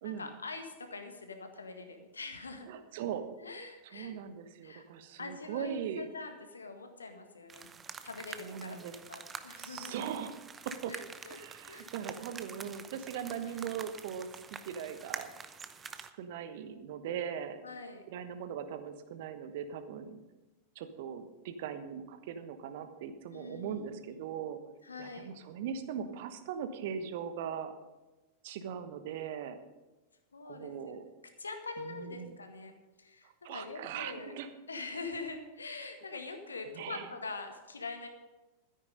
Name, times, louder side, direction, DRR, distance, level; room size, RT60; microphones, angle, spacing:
voice 1, 0.0-2.7 3.1-3.2 3.4-4.1 4.6-4.8 5.2-7.7 8.0-9.9 10.9-11.9 13.3-13.8 17.6-18.0 23.3-24.2 24.8-25.3 30.3-31.0 31.4-32.7 33.0-34.3 34.7-38.1, left 3 dB, 75° left, 5 dB, 1.7 m, -44 dB
voice 2, 2.7-3.2 3.9-6.1 8.4-8.9 9.6-10.3 10.6-10.9 11.3-14.3 14.7-15.3 16.0-17.6 18.1-20.2 20.7-24.6 25.0-27.7 28.4-29.6 30.4-31.1 31.8-32.3 33.2-34.5 36.7-37.1, right 8 dB, 50° right, 9 dB, 1.2 m, -40 dB
sound 1, 7.5-16.1, right 5 dB, 20° right, 0.8 m, -47 dB
13.0 x 9.9 x 5.2 m, 1.1 s
figure-of-eight pair, 90°, 0 cm